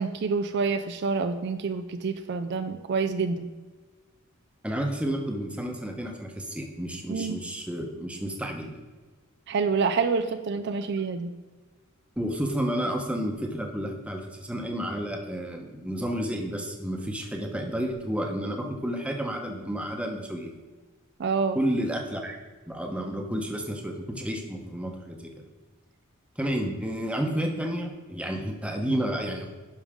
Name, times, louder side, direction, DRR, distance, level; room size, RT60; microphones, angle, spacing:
voice 1, 0.0-3.5 7.1-7.4 9.5-11.3 21.2-21.6, right 5 dB, 55° right, 8 dB, 0.4 m, -27 dB
voice 2, 4.6-8.7 12.2-20.5 21.5-22.4 22.7-25.3 26.4-29.5, equal, 5° right, 2 dB, 0.9 m, -31 dB
11.0 x 5.5 x 3.6 m, 1.3 s
head